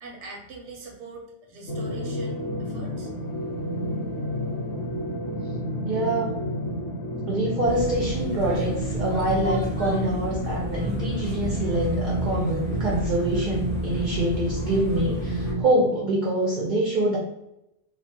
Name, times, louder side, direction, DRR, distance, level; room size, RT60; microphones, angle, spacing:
voice 1, 0.0-3.1, right 3 dB, 90° right, 0 dB, 0.9 m, -42 dB
sound 1, 1.7-15.6, right 1 dB, 75° left, 0.9 m, -30 dB
voice 2, 5.8-6.4 7.3-17.2, right 1 dB, 55° right, -3 dB, 0.6 m, -25 dB
sound 2, 7.6-15.5, equal, 5° left, 0.7 m, -34 dB
2.3 x 2.2 x 2.5 m, 0.84 s
omnidirectional pair, 1.2 m